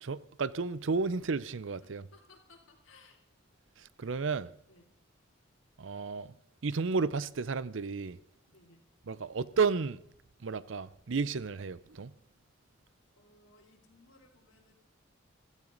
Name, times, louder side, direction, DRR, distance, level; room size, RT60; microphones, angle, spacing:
voice 1, 0.0-2.1 3.8-4.5 5.8-6.3 6.6-8.2 9.1-10.0 10.4-12.1, right 4 dB, 70° right, 0.6 m, -32 dB
voice 2, 2.1-3.2 4.7-4.9 8.5-8.8 13.2-14.7, left 3 dB, 85° left, 3.5 m, -60 dB
15.5 x 14.0 x 3.9 m
head